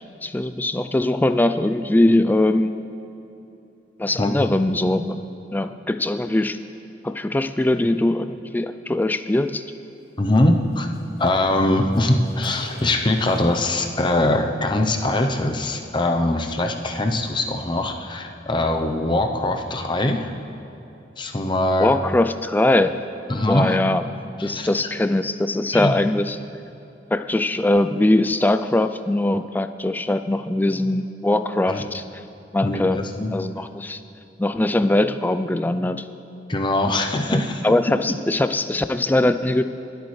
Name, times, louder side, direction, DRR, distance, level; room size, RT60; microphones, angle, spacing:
voice 1, 0.0-2.7 4.0-5.2 5.5-6.6 7.0-9.6 21.8-23.0 23.5-24.0 24.4-26.4 27.1-32.0 32.5-34.0 34.4-36.0 37.3-37.4 37.6-39.6, left 1 dB, 10° left, 10 dB, 0.3 m, -21 dB
Car, 10.0-10.1 10.4-10.5 10.7-13.7 13.9-14.2, left 1 dB, 55° left, 3.4 m, -47 dB
voice 2, 10.2-10.9 11.2-20.3 21.2-22.0 23.3-23.8 24.4-24.7 25.7-25.9 31.7-31.8 32.6-33.3 36.5-37.8, left 1 dB, 25° left, 4 dB, 0.7 m, -22 dB
25.0 x 8.4 x 3.2 m, 2.9 s
head